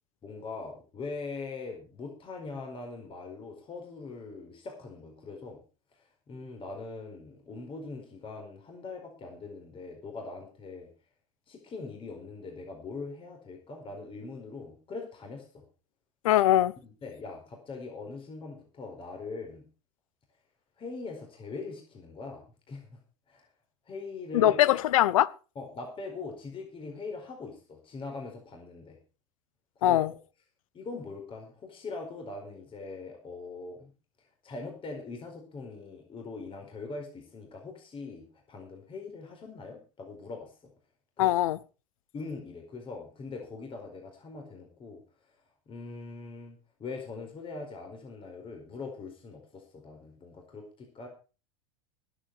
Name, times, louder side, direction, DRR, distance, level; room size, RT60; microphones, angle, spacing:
voice 1, 0.2-5.6 5.9-10.9 11.5-15.6 16.8-19.6 20.8-23.0 23.3-23.5 23.9-24.5 25.5-29.0 29.8-30.1 30.7-33.9 34.2-40.5 41.2-41.3 42.1-45.0 45.7-51.1, left 3 dB, 30° left, 4.6 m, -42 dB
voice 2, 16.2-16.7 24.3-25.3 29.8-30.1 41.2-41.6, left 13 dB, 80° left, 0.7 m, -22 dB
20.5 x 8.2 x 4.8 m
hypercardioid pair, 100°, 17 cm